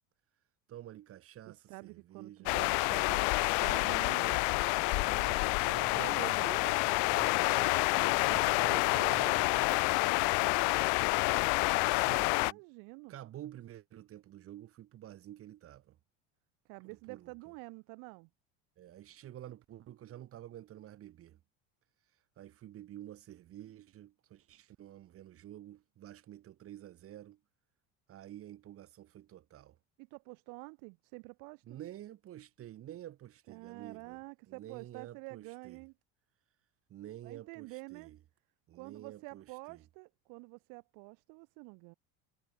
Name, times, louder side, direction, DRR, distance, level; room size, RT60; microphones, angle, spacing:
voice 1, 0.7-2.5 4.8-6.5 7.1-7.4 7.9-12.6 13.1-16.0 16.8-17.3 18.8-21.4 22.4-27.4 28.1-29.8 31.7-34.2 34.5-35.8 36.9-38.2 38.7-39.8, right 12 dB, 45° right, 1.4 m, -50 dB
voice 2, 1.5-4.8 5.8-9.1 12.1-13.1 16.6-18.3 30.0-31.8 33.5-35.9 37.2-38.1 38.7-41.9, right 33 dB, 75° right, 3.2 m, -48 dB
sound 1, 2.5-12.5, left 36 dB, 65° left, 0.4 m, -28 dB
Bass guitar, 5.7-12.0, left 4 dB, 20° left, 4.9 m, -59 dB
supercardioid pair, 110°, 32 cm